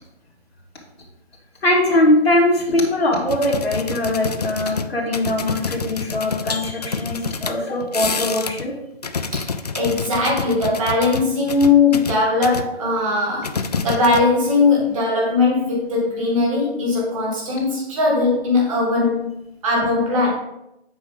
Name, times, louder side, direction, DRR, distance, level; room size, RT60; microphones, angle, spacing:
voice 1, 1.6-8.7, left 1 dB, 70° left, -5 dB, 2.2 m, -21 dB
sound 1, 3.3-8.7 8.9-12.7 13.4-14.5 14.8-15.0, left 5 dB, 40° left, 0.4 m, -28 dB
voice 2, 9.7-13.5 13.8-19.3 19.6-20.3, left 3 dB, 30° right, -3 dB, 2.4 m, -19 dB
8.3 x 4.6 x 3.9 m, 0.87 s
hypercardioid pair, 160°, 32 cm